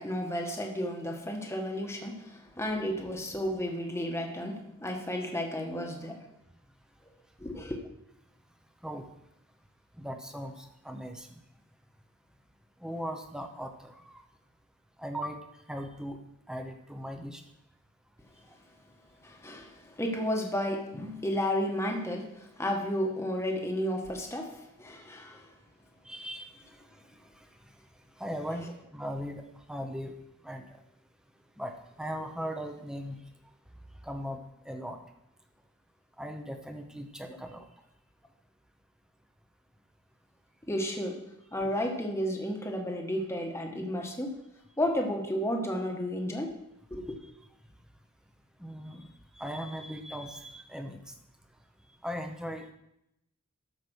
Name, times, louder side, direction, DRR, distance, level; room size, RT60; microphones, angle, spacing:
voice 1, 0.0-6.3 7.4-7.8 19.2-25.6 40.7-41.2 41.5-44.4 44.8-46.5 46.9-47.2, equal, 15° left, 2 dB, 1.3 m, -32 dB
voice 2, 10.0-11.4 12.8-14.2 15.0-15.4 15.7-16.2 16.5-17.4 26.0-26.6 28.2-30.1 30.4-30.6 31.6-33.2 34.0-35.0 36.2-37.7 48.6-49.1 49.4-51.0 52.0-52.7, equal, 5° right, 5 dB, 0.9 m, -38 dB
13.0 x 5.2 x 6.3 m, 0.82 s
head